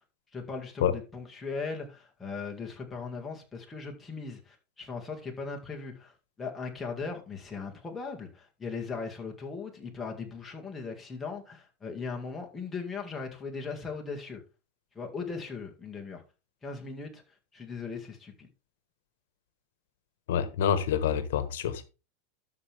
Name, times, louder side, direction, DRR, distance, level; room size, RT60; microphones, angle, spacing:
voice 1, 0.3-14.4 14.9-16.2 16.6-17.2 17.5-18.5, left 4 dB, 10° left, 1.9 m, -38 dB
voice 2, 20.3-21.8, left 8 dB, 80° left, 1.3 m, -27 dB
12.5 x 6.1 x 3.5 m
supercardioid pair, 150°, 0 cm